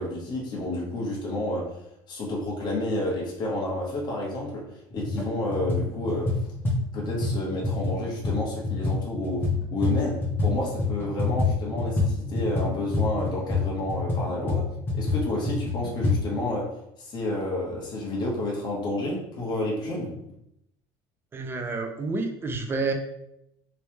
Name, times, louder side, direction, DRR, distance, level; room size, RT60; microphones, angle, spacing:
voice 1, 0.0-1.8 2.1-6.4 6.9-20.2, left 1 dB, 40° left, -3 dB, 1.1 m, -30 dB
sound 1, 4.9-5.3 5.5-10.5 10.8-16.2, left 3 dB, 20° left, 0.9 m, -26 dB
voice 2, 21.3-22.9, right 3 dB, 20° right, 4 dB, 0.5 m, -29 dB
3.2 x 3.0 x 3.3 m, 0.79 s
cardioid pair, 135°, 11 cm